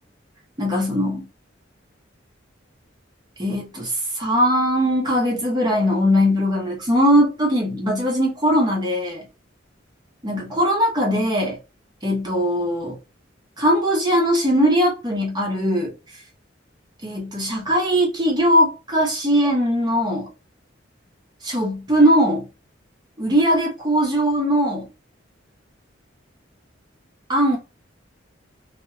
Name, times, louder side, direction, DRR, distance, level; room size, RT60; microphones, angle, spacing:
voice 1, 0.6-1.3 3.4-9.3 10.2-11.6 12.0-13.0 13.6-15.9 17.0-20.3 21.4-22.5 23.2-24.9 27.3-27.6, equal, 20° right, 1.0 m, -20 dB
2.7 x 2.6 x 2.3 m
head